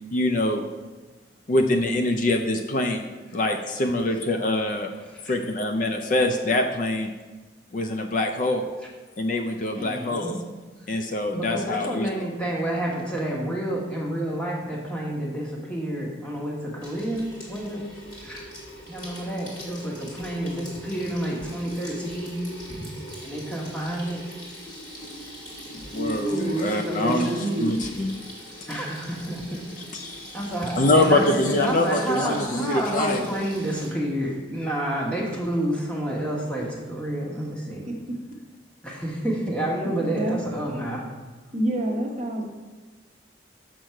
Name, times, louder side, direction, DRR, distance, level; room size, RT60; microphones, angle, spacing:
voice 1, 0.1-0.7 1.5-3.1 3.3-4.9 5.2-7.1 7.7-8.7 9.2-10.4 10.9-12.2 25.7-28.1 29.9-30.4 30.8-33.4, left 1 dB, 45° left, 5 dB, 0.4 m, -24 dB
voice 2, 9.7-10.4 10.8-10.9 11.3-17.8 18.2-18.4 18.9-22.4 22.7-22.9 23.2-24.2 26.3-27.4 28.7-29.8 30.3-37.9 38.8-41.0, right 1 dB, 5° left, -4 dB, 1.3 m, -29 dB
Water tap faucet / Sink (filling or washing), 16.8-33.9, equal, 25° left, 1.9 m, -41 dB
voice 3, 25.9-27.8 37.2-37.5 37.9-38.2 39.8-40.4 40.9-41.0 41.5-42.4, right 1 dB, 35° right, 0 dB, 0.9 m, -28 dB
6.3 x 6.1 x 4.4 m, 1.2 s
head